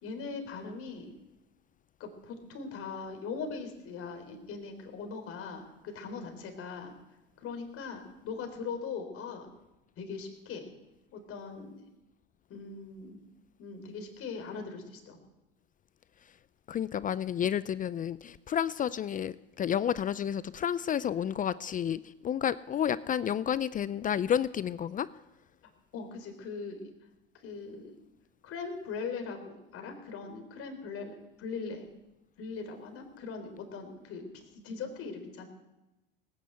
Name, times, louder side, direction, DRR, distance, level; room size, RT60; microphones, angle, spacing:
voice 1, 0.0-1.1 2.0-6.9 7.4-9.5 10.0-10.7 11.1-11.9 12.5-13.2 13.6-15.2 25.9-26.9 27.4-27.9 28.4-31.9 32.4-35.5, left 5 dB, 45° left, 5 dB, 3.9 m, -40 dB
voice 2, 16.7-25.1, left 9 dB, 25° left, 18 dB, 0.5 m, -31 dB
18.5 x 9.6 x 8.0 m, 0.98 s
hypercardioid pair, 90°, 30 cm